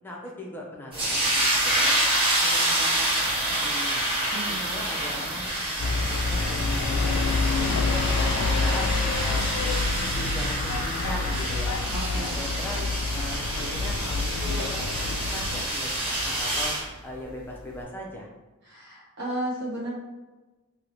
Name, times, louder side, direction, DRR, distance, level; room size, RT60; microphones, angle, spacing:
voice 1, 0.0-2.1 2.4-4.0 4.5-11.8 12.1-12.9 13.1-16.8 17.0-18.3, left 1 dB, 10° left, -3 dB, 0.5 m, -39 dB
sound 1, 0.9-16.8, right 1 dB, 25° right, 1.1 m, -27 dB
sound 2, 5.8-15.6, left 3 dB, 80° left, 0.3 m, -27 dB
voice 2, 11.9-12.4 18.7-19.9, right 1 dB, 55° right, -6 dB, 1.0 m, -33 dB
2.8 x 2.7 x 2.8 m, 1.1 s
head